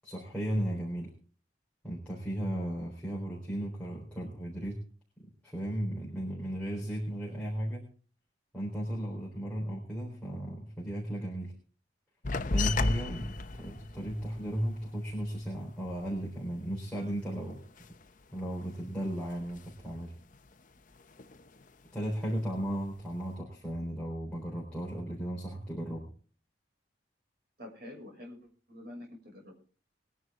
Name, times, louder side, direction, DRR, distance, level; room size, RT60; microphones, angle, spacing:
voice 1, 0.0-1.1 1.8-4.8 5.4-7.9 8.5-11.5 12.5-17.6 18.3-20.1 21.9-26.1, right 1 dB, 5° left, -5 dB, 4.0 m, -35 dB
sound 1, 12.2-17.2 17.5-18.9 19.2-20.0 20.3-21.7 22.1-22.8, left 3 dB, 45° left, 0.9 m, -35 dB
voice 2, 27.6-29.5, left 1 dB, 55° right, 1 dB, 6.5 m, -47 dB
21.5 x 11.0 x 3.7 m, 0.40 s
head